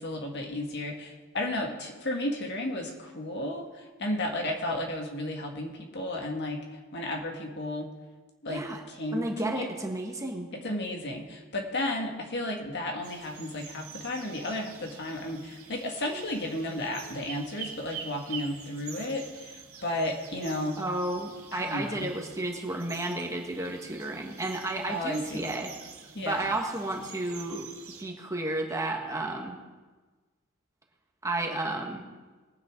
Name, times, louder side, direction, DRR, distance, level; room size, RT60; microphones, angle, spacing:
voice 1, 0.0-6.6 6.9-7.9 8.4-8.6 9.0-9.7 10.6-20.8 21.5-22.1 24.9-25.6 26.1-26.5, left 1 dB, 55° left, 2 dB, 1.9 m, -33 dB
voice 2, 8.5-8.8 9.1-10.5 20.8-25.7 26.2-27.7 28.0-29.6 31.2-32.0, right 2 dB, 15° right, 1 dB, 1.5 m, -32 dB
sound 1, 13.0-28.0, right 6 dB, 80° right, 2.1 m, -46 dB
20.5 x 9.4 x 3.8 m, 1.3 s
head